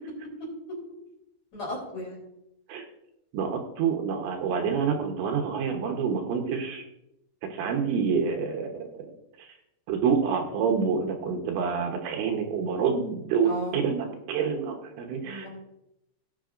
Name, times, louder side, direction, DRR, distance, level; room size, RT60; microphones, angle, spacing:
voice 1, 1.5-2.2 13.4-13.8 15.2-15.5, left 1 dB, 40° left, -3 dB, 4.2 m, -34 dB
voice 2, 3.3-6.8 7.5-8.7 9.4-9.5 9.9-15.5, right 6 dB, 75° right, 3 dB, 3.2 m, -27 dB
18.5 x 6.8 x 2.5 m, 0.84 s
omnidirectional pair, 5.3 m